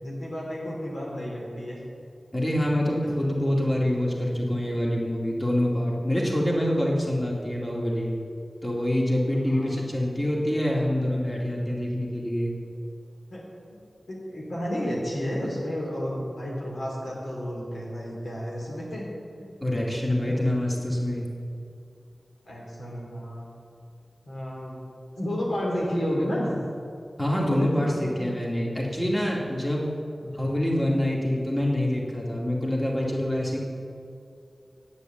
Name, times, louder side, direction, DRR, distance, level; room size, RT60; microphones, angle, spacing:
voice 1, 0.0-1.8 9.4-9.8 13.3-13.8 14.1-19.1 19.4-19.5 20.0-20.4 22.5-23.5 24.2-24.8 25.2-26.5 27.3-28.3 29.8-29.9, equal, 85° left, -4 dB, 3.0 m, -32 dB
voice 2, 2.3-8.2 8.6-12.5 19.6-21.2 27.2-29.9 30.2-33.6, left 1 dB, 25° left, -3 dB, 2.3 m, -26 dB
8.8 x 8.3 x 7.8 m, 2.4 s
cardioid pair, 40°, 0 cm